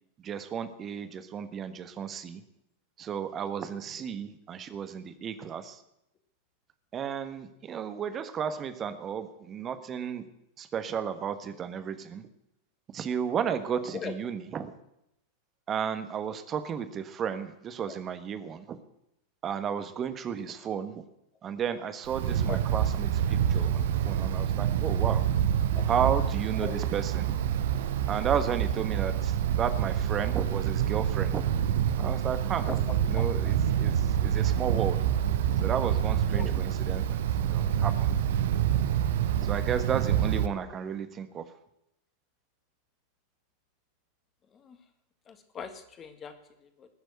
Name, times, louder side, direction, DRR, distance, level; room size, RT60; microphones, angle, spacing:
voice 1, 0.2-2.4 3.0-5.8 6.9-10.2 10.6-12.3 12.9-14.8 15.7-18.8 19.4-21.0 21.4-25.3 25.9-27.3 28.1-31.4 32.0-32.8 33.1-35.0 35.6-38.2 39.4-41.5, right 8 dB, 25° right, 10 dB, 1.3 m, -33 dB
voice 2, 13.7-14.1 17.9-18.0 22.5-22.6 25.7-25.8 26.6-26.8 32.7-33.2 36.3-36.5 44.5-44.8 45.3-46.3 46.6-46.9, left 6 dB, 25° left, 8 dB, 1.9 m, -40 dB
Wind, 22.1-40.5, right 9 dB, 55° right, 0.8 m, -27 dB
19.5 x 7.0 x 7.9 m, 0.82 s
figure-of-eight pair, 90°, 0 cm